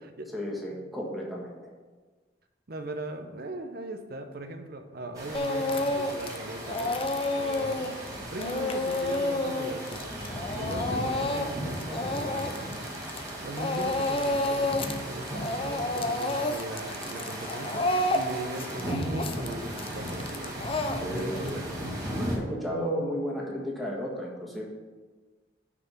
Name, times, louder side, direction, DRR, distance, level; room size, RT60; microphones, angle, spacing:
voice 1, 0.3-1.5 21.0-21.6 22.0-24.6, equal, ahead, -4 dB, 1.6 m, -33 dB
voice 2, 2.7-7.0 7.4-10.1 10.6-12.7 13.4-17.9 18.1-20.7 21.1-21.6, right 2 dB, 55° right, 6 dB, 0.8 m, -39 dB
sound 1, 5.1-22.4, right 1 dB, 20° right, 1.9 m, -36 dB
Speech / Crying sobbing, 5.3-6.4 6.7-13.3 13.6-15.0 15.3-21.5, left 2 dB, 30° left, 0.5 m, -30 dB
6.1 x 5.8 x 7.2 m, 1.3 s
head